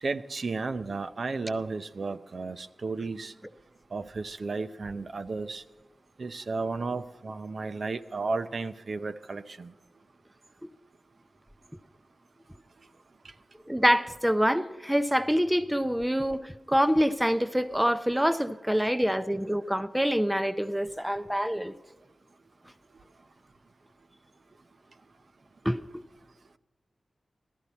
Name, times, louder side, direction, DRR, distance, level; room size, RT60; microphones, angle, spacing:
voice 1, 0.0-3.3 3.9-5.6 6.2-9.7 18.8-18.9, right 3 dB, 55° right, 10 dB, 0.6 m, -33 dB
voice 2, 13.7-21.7 25.6-25.8, equal, 5° right, 10 dB, 0.5 m, -26 dB
16.0 x 13.0 x 4.2 m, 1.2 s
wide cardioid pair, 110°, 0 cm